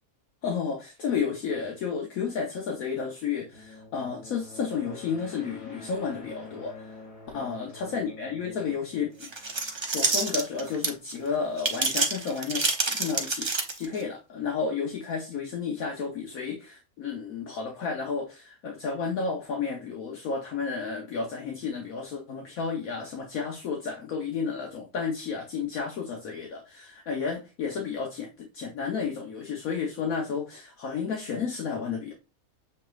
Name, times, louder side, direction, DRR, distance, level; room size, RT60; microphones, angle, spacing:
voice 1, 0.4-7.0 7.3-9.4 9.9-32.1, left 5 dB, 75° left, 1.3 m, -32 dB
sound 1, 3.5-10.2, left 3 dB, 55° left, 3.2 m, -47 dB
sound 2, 9.2-11.1 11.6-14.0, right 3 dB, 35° right, 0.4 m, -27 dB
7.1 x 3.1 x 2.4 m
omnidirectional pair, 1.5 m